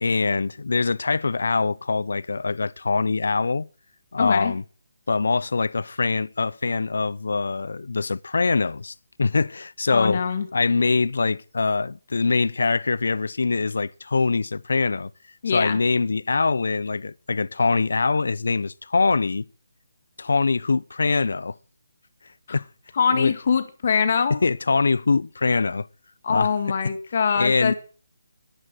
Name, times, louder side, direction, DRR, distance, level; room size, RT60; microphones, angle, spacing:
voice 1, 0.0-3.7 4.1-4.6 5.1-10.2 10.5-15.1 15.5-19.5 20.2-21.6 22.5-22.7 23.1-23.3 24.3-25.9 26.3-26.5 27.4-27.7, left 4 dB, 75° left, 0.6 m, -23 dB
voice 2, 4.2-4.6 9.9-10.5 15.4-15.8 22.5-22.6 23.0-24.4 26.2-27.7, left 6 dB, 50° left, 2.0 m, -23 dB
11.0 x 10.0 x 7.8 m
hypercardioid pair, 160°, 0 cm